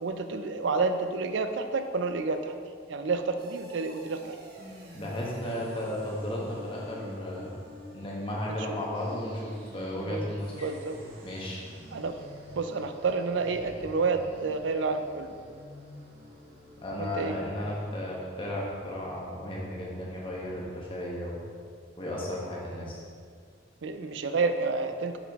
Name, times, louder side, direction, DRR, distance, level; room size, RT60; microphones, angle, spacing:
voice 1, 0.0-2.5 2.9-4.3 10.1-10.2 10.6-11.0 11.9-12.2 12.6-15.4 17.0-17.4 23.8-25.2, right 4 dB, 70° right, 8 dB, 0.4 m, -29 dB
sound 1, 3.4-20.7, left 1 dB, 50° right, 1.1 m, -48 dB
voice 2, 4.9-7.5 7.9-10.7 11.2-11.6 16.8-21.4 22.0-23.0, left 1 dB, 25° left, -4 dB, 1.1 m, -34 dB
6.6 x 5.0 x 3.6 m, 2.1 s
head